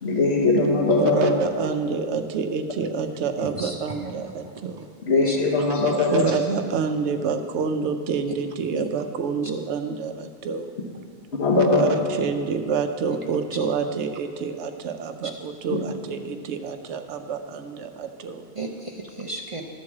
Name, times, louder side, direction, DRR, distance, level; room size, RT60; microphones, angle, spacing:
voice 1, 0.0-1.3 5.1-6.3 11.4-11.9, left 3 dB, 70° left, -2 dB, 1.4 m, -20 dB
voice 2, 1.0-4.9 5.6-5.7 6.0-10.7 11.7-18.4, right 5 dB, 85° right, 7 dB, 0.9 m, -28 dB
voice 3, 3.4-4.3 4.8-4.9 5.2-5.4 8.7-8.9 18.6-19.6, right 2 dB, 40° right, 2 dB, 0.6 m, -35 dB
12.5 x 4.7 x 7.2 m, 2.2 s
omnidirectional pair, 1.1 m